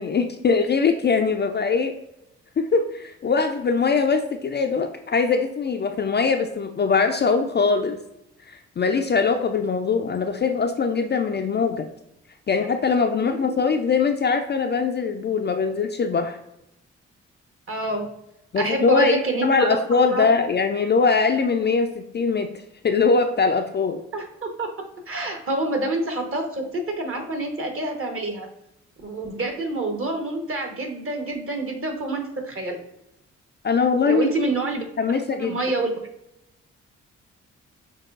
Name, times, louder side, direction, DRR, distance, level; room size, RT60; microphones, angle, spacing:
voice 1, 0.0-1.9 2.6-8.0 8.5-11.9 12.5-16.4 18.5-22.5 22.8-24.0 33.6-34.3 35.0-35.6, left 5 dB, 30° left, 5 dB, 0.4 m, -22 dB
voice 2, 13.2-13.6 17.7-18.1 18.6-19.8 20.1-20.3 24.1-24.7 25.1-28.5 29.0-32.8 34.1-35.9, right 2 dB, 40° right, 3 dB, 1.1 m, -27 dB
6.2 x 2.2 x 2.4 m, 0.83 s
hypercardioid pair, 40°, 33 cm